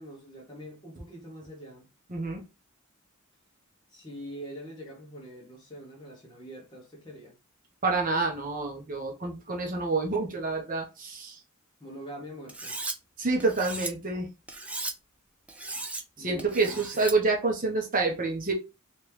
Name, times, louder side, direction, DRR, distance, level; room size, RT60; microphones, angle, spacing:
voice 1, 0.0-1.9 3.9-7.3 11.8-12.8 16.2-17.0, equal, 20° left, 0.9 m, -44 dB
voice 2, 2.1-2.4 7.8-11.4 13.2-14.3 16.2-18.5, right 3 dB, 40° right, 1.0 m, -28 dB
Cutlery silverware, 12.5-13.0 13.4-13.9 14.5-14.9 15.5-16.0 16.4-17.2, right 2 dB, 5° right, 0.4 m, -36 dB
3.2 x 3.1 x 3.1 m
head